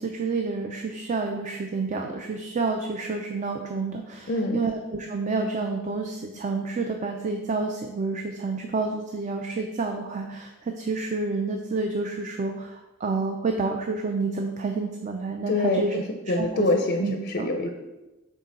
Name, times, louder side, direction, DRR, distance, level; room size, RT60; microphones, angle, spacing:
voice 1, 0.0-15.9 16.4-16.7 17.0-17.5, right 3 dB, 35° right, 3 dB, 0.4 m, -29 dB
voice 2, 4.3-4.7 15.5-17.7, left 2 dB, 45° left, 4 dB, 0.5 m, -25 dB
6.3 x 3.8 x 4.1 m, 1.1 s
head